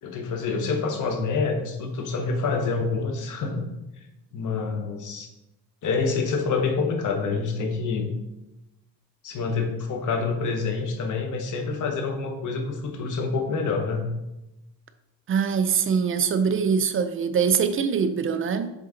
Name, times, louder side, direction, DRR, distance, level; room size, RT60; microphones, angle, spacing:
voice 1, 0.0-3.7 4.3-5.3 5.8-8.1 9.2-14.1, left 4 dB, 55° left, 1.2 m, -27 dB
voice 2, 15.3-18.7, right 6 dB, 35° right, 0.5 m, -23 dB
7.3 x 3.8 x 3.8 m
cardioid pair, 140°, 36 cm